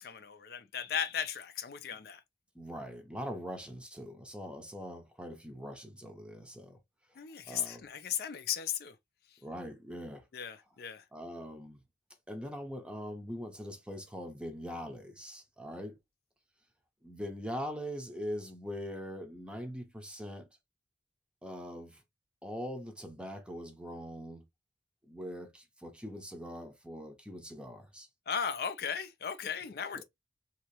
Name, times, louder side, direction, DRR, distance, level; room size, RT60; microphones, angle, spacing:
voice 1, 0.0-2.2 7.2-9.0 9.3-9.4 10.3-11.1 28.3-30.0, left 8 dB, 55° left, 0.4 m, -36 dB
voice 2, 2.5-6.8 7.1-7.2 7.4-7.9 9.4-10.3 11.1-11.8 12.3-16.0 17.0-20.5 21.4-22.0 22.4-24.4 25.0-28.1, equal, 5° right, 0.6 m, -42 dB
2.9 x 2.7 x 3.0 m
head